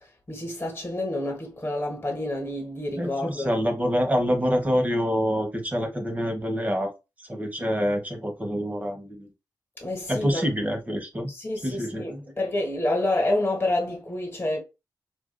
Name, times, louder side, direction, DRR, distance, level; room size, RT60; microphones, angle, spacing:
voice 1, 0.0-3.5 9.8-10.5 11.3-14.6, left 1 dB, 25° left, 1.5 m, -28 dB
voice 2, 3.0-6.9 7.2-9.3 10.1-11.3 11.6-12.2, equal, 20° right, 1.2 m, -26 dB
4.4 x 2.6 x 2.2 m
cardioid pair, 55°, 8 cm